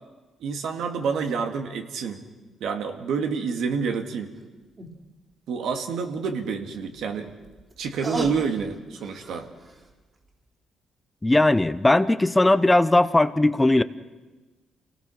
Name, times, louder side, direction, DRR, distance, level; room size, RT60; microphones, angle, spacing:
voice 1, 0.4-2.2 2.6-4.3 5.5-7.3 7.8-9.5, right 5 dB, 75° right, 5 dB, 2.2 m, -28 dB
sound 1, 4.4-4.5 4.8-4.9 6.8-9.9 10.3-10.4, right 2 dB, 35° right, 3.8 m, -37 dB
voice 2, 11.2-13.8, left 2 dB, 15° left, 14 dB, 0.7 m, -19 dB
27.5 x 18.5 x 6.5 m, 1.2 s
cardioid pair, 90°, 0 cm